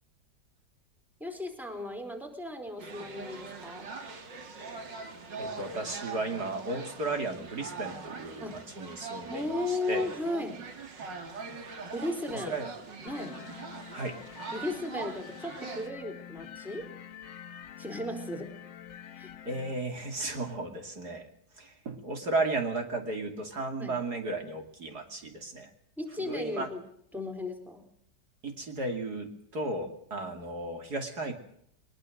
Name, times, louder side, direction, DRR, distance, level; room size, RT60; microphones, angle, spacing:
voice 1, 1.2-3.9 8.4-8.6 9.3-10.6 11.9-12.5 13.0-13.4 14.5-16.9 17.8-18.5 19.2-19.3 23.8-23.9 26.0-26.8 27.1-27.8, left 2 dB, ahead, 5 dB, 4.1 m, -35 dB
sound 1, 2.8-15.9, right 4 dB, 90° right, 3.0 m, -42 dB
voice 2, 5.4-10.1 12.3-12.7 13.9-14.2 19.4-21.3 21.5-25.7 26.2-26.7 28.4-31.3, right 2 dB, 60° right, 4 dB, 3.2 m, -34 dB
sound 2, 13.1-19.7, left 9 dB, 85° left, 1.7 m, -46 dB
23.0 x 21.0 x 6.5 m, 0.69 s
omnidirectional pair, 1.9 m